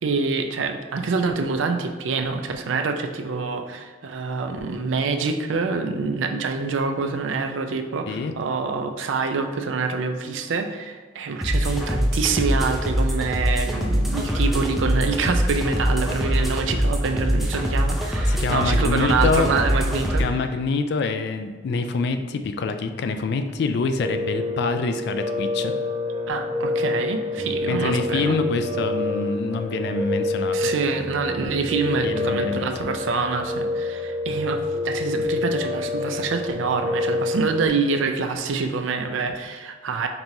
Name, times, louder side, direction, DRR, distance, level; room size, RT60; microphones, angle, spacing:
voice 1, 0.0-20.4 26.3-28.4 30.5-40.1, right 4 dB, 85° right, 6 dB, 0.4 m, -26 dB
sound 1, 11.4-20.2, equal, ahead, 0.4 m, -23 dB
voice 2, 18.3-19.5 20.2-25.7 27.7-30.7 32.0-33.0, left 4 dB, 60° left, 8 dB, 0.3 m, -26 dB
Piano, 24.0-37.7, left 2 dB, 30° right, 1.2 m, -27 dB
5.3 x 2.9 x 2.6 m, 1.5 s
head